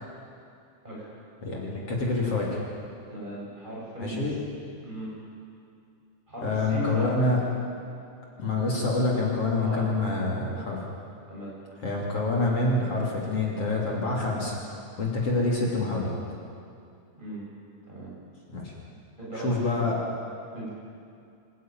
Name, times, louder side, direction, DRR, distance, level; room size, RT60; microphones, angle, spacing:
voice 1, 1.4-2.6 4.0-4.3 6.4-7.4 8.4-10.8 11.8-14.6 15.0-16.1 18.5-18.7 19.4-19.9, left 2 dB, 50° left, -3 dB, 4.0 m, -26 dB
voice 2, 3.1-4.2 4.8-5.1 6.3-7.2 9.6-9.9 11.3-11.5 17.1-17.4 17.9-18.1 19.2-19.8 20.5-20.7, equal, 15° right, -6 dB, 8.2 m, -37 dB
26.0 x 15.5 x 9.3 m, 2.5 s
omnidirectional pair, 3.5 m